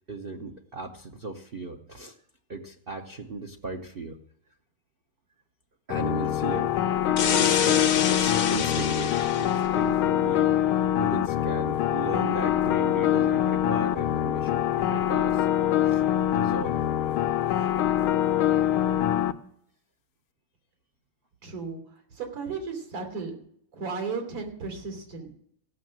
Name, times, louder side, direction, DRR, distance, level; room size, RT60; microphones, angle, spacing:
voice 1, 0.1-2.2 2.5-4.2 5.9-6.7 7.0-10.5 11.0-15.5 15.8-16.0 16.3-16.8 17.6-17.7, right 3 dB, 55° right, 3 dB, 0.6 m, -37 dB
sound 1, 5.9-19.3, left 11 dB, 75° left, 1.4 m, -24 dB
sound 2, 7.2-9.6, left 8 dB, 55° left, 1.0 m, -27 dB
voice 2, 21.4-21.8 22.1-23.4 23.7-25.4, right 4 dB, 85° right, 3 dB, 4.2 m, -34 dB
16.5 x 6.5 x 7.5 m, 0.67 s
omnidirectional pair, 2.4 m